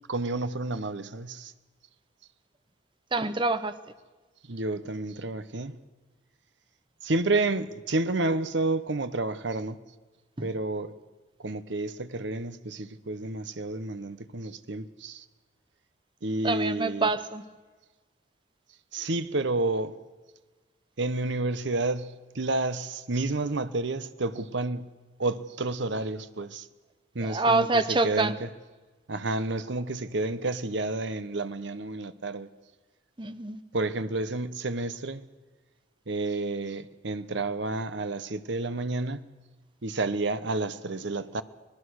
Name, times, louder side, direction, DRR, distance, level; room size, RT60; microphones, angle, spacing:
voice 1, 0.1-1.5 4.5-5.8 7.0-9.8 10.4-10.9 11.4-15.2 16.2-17.1 18.9-20.0 21.0-24.9 25.2-26.7 27.1-28.5 29.1-32.5 33.7-35.2 36.1-39.2 39.8-41.4, right 2 dB, 60° right, 0.9 m, -30 dB
voice 2, 3.1-3.7 10.4-10.5 16.4-17.4 27.2-28.4 33.2-33.6, right 3 dB, 25° right, 0.8 m, -26 dB
25.5 x 19.0 x 6.4 m
head